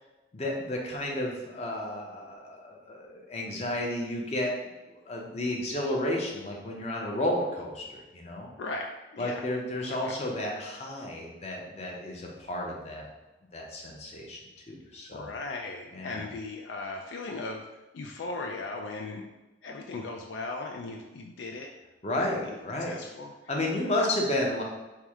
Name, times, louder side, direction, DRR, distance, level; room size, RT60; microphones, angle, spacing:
voice 1, 0.3-4.5 4.9-8.5 9.2-13.1 13.5-15.3 15.9-16.3 22.0-23.0 23.5-24.6, left 1 dB, 35° left, -1 dB, 0.6 m, -32 dB
voice 2, 8.6-9.4 9.9-10.2 15.1-17.7 17.9-19.2 19.6-21.7 22.1-23.3 24.0-24.1, left 3 dB, 70° left, 2 dB, 0.3 m, -38 dB
4.5 x 2.1 x 3.5 m, 1.1 s
head